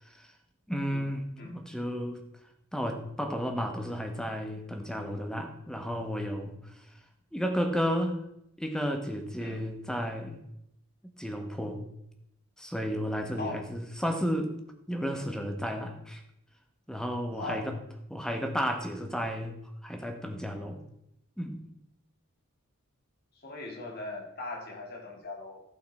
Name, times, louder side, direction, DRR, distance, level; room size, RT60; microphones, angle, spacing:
voice 1, 0.7-2.2 2.7-6.6 7.3-8.2 8.6-10.4 11.2-11.8 12.6-14.5 14.9-16.2 16.9-17.7 18.1-19.5 19.8-20.8 21.4-21.6, equal, 5° left, 5 dB, 1.2 m, -32 dB
voice 2, 17.4-17.7 23.4-25.6, left 3 dB, 45° left, 0 dB, 2.4 m, -39 dB
15.5 x 5.6 x 4.3 m, 0.78 s
head